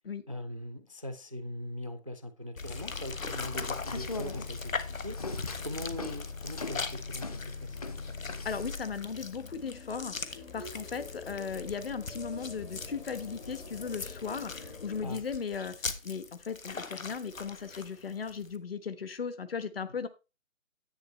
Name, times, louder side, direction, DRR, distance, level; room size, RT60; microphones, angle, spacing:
voice 1, 0.3-5.3 5.6-8.1 15.0-15.2, left 1 dB, 25° right, 0.4 m, -41 dB
sound 1, 2.6-18.6, left 4 dB, 85° left, 1.4 m, -42 dB
sound 2, 2.6-15.2, left 4 dB, 60° left, 3.1 m, -43 dB
sound 3, 3.4-8.8, left 3 dB, 30° left, 0.7 m, -41 dB
voice 2, 8.4-15.8 16.0-20.1, left 6 dB, 45° left, 1.2 m, -37 dB
10.5 x 8.5 x 3.1 m
figure-of-eight pair, 155°, 39 cm